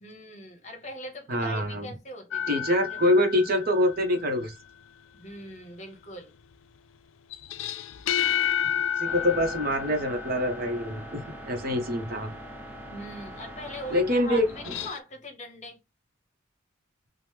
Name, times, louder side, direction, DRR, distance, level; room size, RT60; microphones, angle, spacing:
voice 1, 0.0-3.0 5.1-6.3 12.8-15.8, equal, 35° left, 0.8 m, -41 dB
voice 2, 1.3-1.9 2.5-4.5 9.0-11.2 11.5-12.3 13.9-14.5, left 1 dB, 50° right, 0.7 m, -25 dB
sound 1, 2.3-4.3 7.3-10.9 14.5-15.0, left 9 dB, 80° left, 0.3 m, -31 dB
sound 2, 9.0-14.9, right 1 dB, 10° right, 0.3 m, -43 dB
2.9 x 2.0 x 3.3 m
head